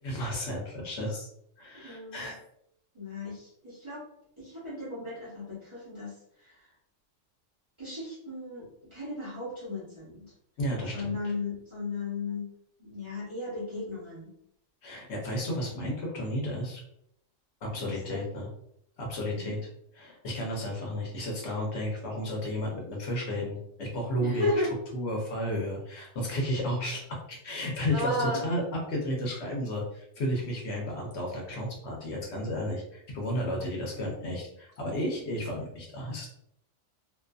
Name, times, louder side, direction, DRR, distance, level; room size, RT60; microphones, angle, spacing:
voice 1, 0.0-1.3 1.6-2.4 10.6-11.2 14.8-16.8 17.6-18.5 19.0-19.6 20.0-24.5 24.9-28.6 28.9-36.3, equal, 65° left, -1 dB, 0.9 m, -33 dB
voice 2, 1.7-2.3 2.9-4.0 4.4-6.7 7.8-10.3 10.9-12.5 12.8-14.4 17.9-18.3 19.3-19.6 24.2-24.7 27.9-28.5, left 2 dB, 25° right, -9 dB, 0.8 m, -35 dB
2.5 x 2.4 x 2.2 m, 0.75 s
omnidirectional pair, 1.3 m